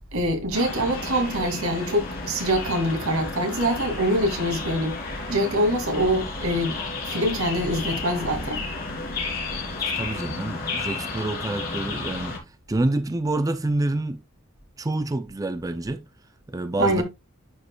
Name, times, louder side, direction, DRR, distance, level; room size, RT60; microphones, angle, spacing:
voice 1, 0.1-5.0 5.3-6.8 7.1-8.7 16.8-17.0, equal, 90° right, 2.3 m, -24 dB
sound 1, 0.5-12.4, left 3 dB, 45° left, 2.9 m, -32 dB
voice 2, 10.0-12.3 12.7-14.2 14.8-16.0 16.5-17.0, right 2 dB, 15° right, 0.4 m, -27 dB
10.5 x 5.2 x 2.3 m
head